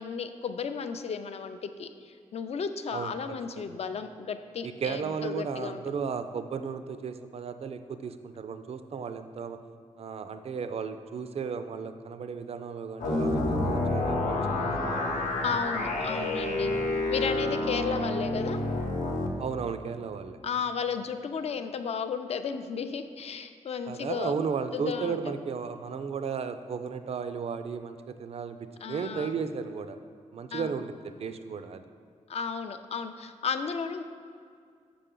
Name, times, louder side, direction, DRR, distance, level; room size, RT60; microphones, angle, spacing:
voice 1, 0.0-5.8 15.4-16.7 17.1-18.6 20.4-24.4 24.7-25.4 28.8-29.4 30.5-30.8 32.3-34.0, left 6 dB, 55° left, 9 dB, 0.4 m, -34 dB
voice 2, 4.6-9.6 10.0-15.1 19.4-20.4 23.9-30.0 30.3-31.8, right 6 dB, 55° right, 10 dB, 0.4 m, -34 dB
sound 1, 13.0-19.3, left 2 dB, 80° left, 0.8 m, -29 dB
6.8 x 4.9 x 3.7 m, 2.2 s
cardioid pair, 90°, 13 cm